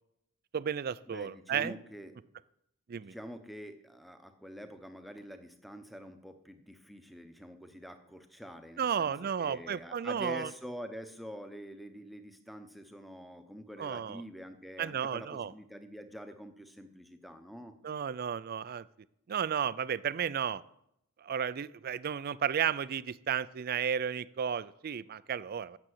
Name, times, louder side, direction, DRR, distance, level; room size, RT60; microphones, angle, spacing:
voice 1, 0.5-1.8 2.9-3.2 8.8-10.5 13.8-14.2 14.8-15.5 17.8-18.9 19.3-20.6 21.2-25.8, right 8 dB, 45° right, 18 dB, 0.3 m, -33 dB
voice 2, 1.1-2.1 2.9-17.7, equal, ahead, 8 dB, 0.8 m, -46 dB
8.8 x 6.8 x 7.8 m, 0.78 s
head